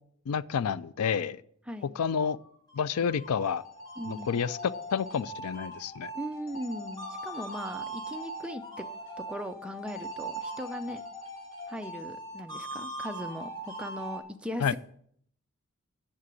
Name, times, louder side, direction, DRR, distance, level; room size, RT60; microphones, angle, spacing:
voice 1, 0.3-1.4 2.0-2.4 2.7-3.6 4.1-6.1 14.6-14.8, left 7 dB, 90° left, 18 dB, 0.4 m, -29 dB
sound 1, 2.4-14.2, right 1 dB, 15° left, 2.1 m, -41 dB
sound 2, 3.2-5.2 6.5-8.5 9.9-11.9, equal, 65° left, 1.6 m, -46 dB
voice 2, 4.0-4.3 6.1-8.8 9.3-11.0 11.7-14.8, equal, 5° right, 6 dB, 0.5 m, -38 dB
7.7 x 6.9 x 8.3 m, 0.66 s
head